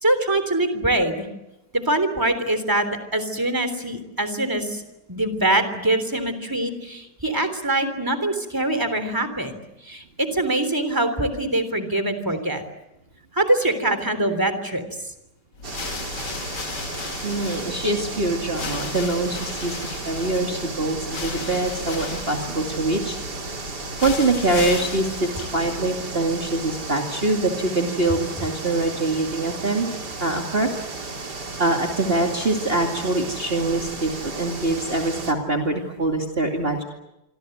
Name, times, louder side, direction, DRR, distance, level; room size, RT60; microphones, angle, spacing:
voice 1, 0.0-1.3 1.7-2.9 3.1-4.8 5.1-9.6 9.9-12.6 13.3-14.8, right 1 dB, 10° right, 9 dB, 3.4 m, -23 dB
sound 1, 15.5-26.2, left 5 dB, 70° left, 2.4 m, -35 dB
sound 2, 15.6-35.3, right 3 dB, 65° right, 3.5 m, -34 dB
voice 2, 17.2-23.2 23.4-23.5 24.0-29.9 30.2-30.7 31.6-36.8, right 2 dB, 30° right, 1 dB, 2.6 m, -24 dB
27.0 x 24.5 x 8.0 m, 0.91 s
omnidirectional pair, 1.9 m